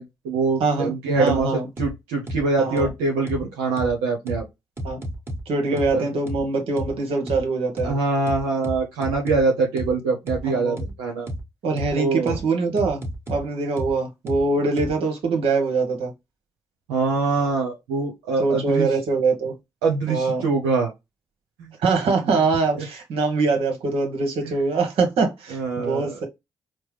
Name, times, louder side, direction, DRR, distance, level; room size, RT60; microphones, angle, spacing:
voice 1, 0.0-1.5 1.8-4.4 5.9-6.0 7.8-11.3 12.0-12.4 16.9-18.9 19.8-20.9 22.0-22.1 25.5-26.1, right 3 dB, 85° right, 0.9 m, -24 dB
voice 2, 0.6-1.7 2.6-2.9 4.8-5.0 5.5-8.0 10.5-10.8 11.6-13.0 13.3-16.1 18.4-19.6 20.1-20.5 21.8-26.3, right 3 dB, 70° right, 1.3 m, -23 dB
sound 1, 1.3-1.4 1.8-1.9 2.3-2.4 2.8-2.9 3.3-3.4 3.8-3.9 4.3-4.4 4.8-5.4 5.8-5.9 6.3-6.4 6.8-6.9 7.3-7.4 7.8-7.9 8.3-9.4 9.8-9.9 10.3-10.4 10.8-10.9 11.3-11.4 11.8-11.9 12.3-12.4 12.8-13.4 13.8-13.9 14.3-14.4 14.8-14.9, equal, 25° right, 1.6 m, -31 dB
4.5 x 2.1 x 3.2 m
hypercardioid pair, 45°, 10 cm